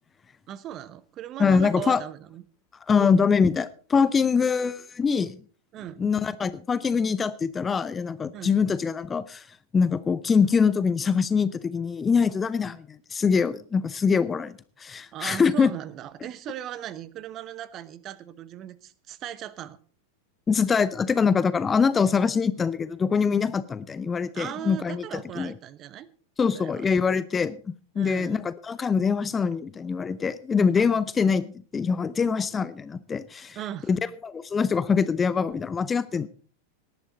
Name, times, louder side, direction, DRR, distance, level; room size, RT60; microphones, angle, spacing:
voice 1, 0.5-2.4 2.9-3.1 5.7-6.0 8.3-8.5 15.1-19.8 24.3-26.1 26.5-26.9 27.9-28.4 30.8-30.9 33.5-33.9, right 11 dB, 35° right, 18 dB, 0.9 m, -38 dB
voice 2, 1.4-2.0 2.9-5.4 6.0-9.4 9.7-15.7 20.5-25.5 26.4-27.6 27.9-33.6 33.9-36.3, left 5 dB, 20° left, 17 dB, 0.6 m, -24 dB
18.5 x 11.5 x 4.0 m, 0.40 s
figure-of-eight pair, 90°, 0 cm